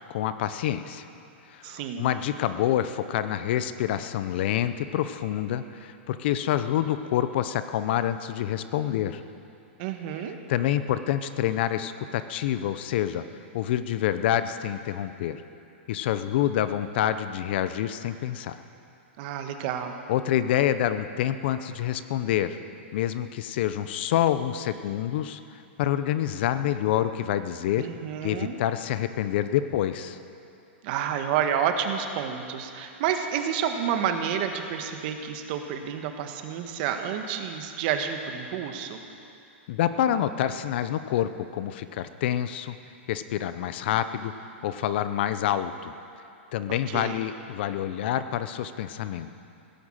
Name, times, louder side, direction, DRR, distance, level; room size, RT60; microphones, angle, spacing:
voice 1, 0.1-1.1 1.5-9.2 10.5-13.3 13.5-15.4 15.9-18.6 20.1-22.6 22.9-25.4 25.8-27.9 28.2-30.2 39.7-42.7 43.1-44.3 44.6-45.9 46.5-49.4, left 11 dB, 55° left, 12 dB, 0.7 m, -27 dB
voice 2, 1.6-2.1 9.8-10.4 19.2-20.0 27.8-28.5 30.8-39.0 46.7-47.2, right 8 dB, 50° right, 6 dB, 1.4 m, -29 dB
16.5 x 10.5 x 7.5 m, 2.6 s
hypercardioid pair, 145°, 7 cm